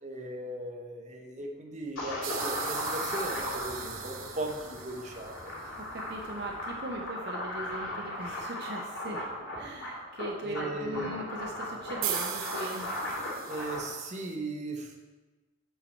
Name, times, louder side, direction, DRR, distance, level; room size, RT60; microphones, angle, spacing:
voice 1, 0.0-5.7 10.4-11.1 13.5-15.0, right 1 dB, 35° right, 1 dB, 1.0 m, -37 dB
sound 1, 2.0-13.8, left 1 dB, 90° left, 2.5 m, -37 dB
sound 2, 2.2-5.7 12.0-14.3, right 10 dB, 90° right, 0.7 m, -39 dB
voice 2, 5.8-9.3 9.6-13.0, right 1 dB, 55° right, 1 dB, 0.8 m, -39 dB
7.5 x 6.9 x 4.5 m, 1.2 s
head